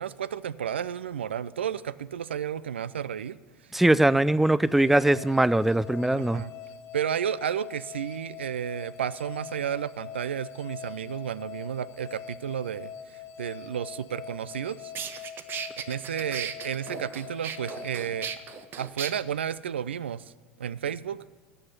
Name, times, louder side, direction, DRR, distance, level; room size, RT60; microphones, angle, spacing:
voice 1, 0.0-3.4 6.1-6.5 6.9-14.9 15.8-18.3 18.8-20.2 20.6-21.2, right 9 dB, 75° right, 19 dB, 0.4 m, -32 dB
voice 2, 3.7-6.4, right 1 dB, 5° right, 19 dB, 0.3 m, -21 dB
sound 1, 4.7-19.1, left 9 dB, 50° left, 1.1 m, -43 dB
sound 2, 14.5-14.6 15.0-19.1, right 8 dB, 35° right, 0.9 m, -36 dB
12.5 x 7.9 x 9.9 m, 1.3 s
figure-of-eight pair, 80°, 6 cm